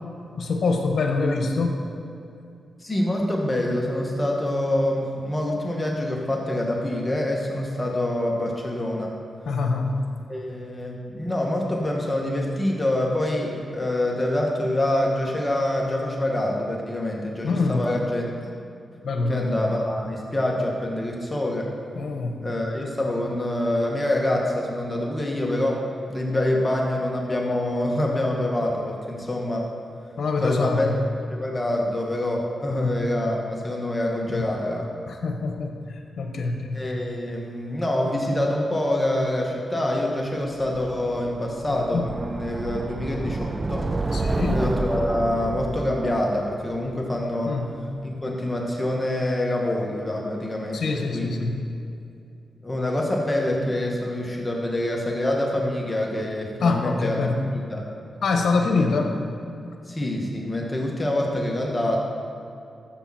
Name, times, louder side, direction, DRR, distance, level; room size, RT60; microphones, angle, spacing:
voice 1, 0.4-1.8 9.4-10.0 17.4-17.9 19.0-19.5 21.9-22.4 30.2-31.0 32.7-32.9 34.3-34.5 35.1-36.8 41.7-42.0 44.1-44.6 47.4-47.8 50.7-51.6 56.6-57.4 58.2-59.2, left 3 dB, 70° left, 3 dB, 1.6 m, -25 dB
voice 2, 2.8-9.2 10.3-18.3 19.3-21.7 22.4-25.8 26.1-29.7 30.4-30.9 31.3-34.8 36.7-43.9 44.5-47.6 48.0-51.5 52.6-57.9 58.8-58.9 59.9-62.0, left 1 dB, 20° left, -1 dB, 2.2 m, -26 dB
sound 1, 40.6-47.6, right 2 dB, 35° right, 0.5 m, -30 dB
13.5 x 8.2 x 4.5 m, 2.6 s
cardioid pair, 55°, 0 cm